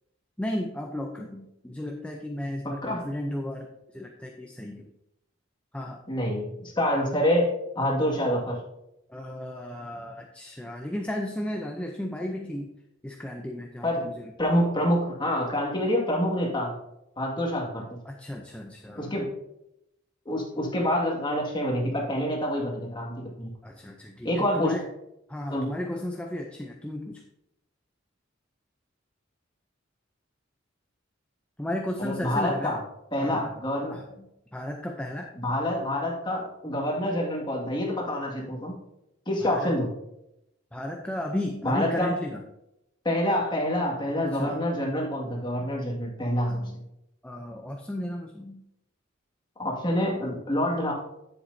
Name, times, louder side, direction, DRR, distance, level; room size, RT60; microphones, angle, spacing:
voice 1, 0.4-4.9 5.7-6.0 9.1-12.7 13.0-14.3 18.0-19.2 23.6-24.9 25.3-27.2 31.6-32.8 33.2-33.5 33.9-35.3 39.4-39.7 40.7-42.4 44.2-44.6 46.5-46.8 47.2-48.6, left 1 dB, 5° left, 1 dB, 0.6 m, -34 dB
voice 2, 2.6-3.1 6.1-7.5 7.8-8.6 13.8-14.1 14.4-16.7 17.2-18.0 19.0-19.3 20.3-23.5 24.2-24.7 25.5-25.7 32.0-32.8 33.1-33.9 35.4-38.8 39.3-39.9 41.6-42.1 43.0-46.6 49.6-50.9, equal, 25° left, -2 dB, 2.0 m, -27 dB
9.9 x 7.9 x 2.7 m, 0.85 s
head